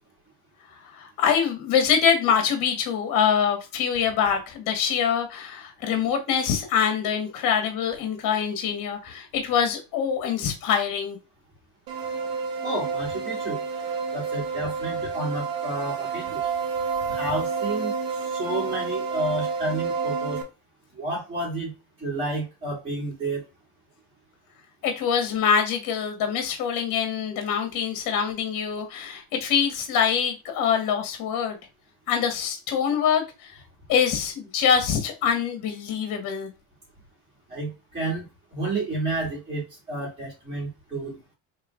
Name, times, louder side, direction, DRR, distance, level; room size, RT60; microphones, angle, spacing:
voice 1, 0.8-11.2 24.8-31.6 32.1-33.5 33.9-36.5, left 7 dB, 50° left, 1.4 m, -24 dB
sound 1, 11.9-20.4, right 5 dB, 60° right, 1.3 m, -29 dB
voice 2, 12.6-13.6 14.1-16.5 17.1-20.4 21.0-21.7 22.0-23.4 37.5-41.3, right 2 dB, 15° right, 2.8 m, -31 dB
5.6 x 3.5 x 2.5 m
supercardioid pair, 125°, 41 cm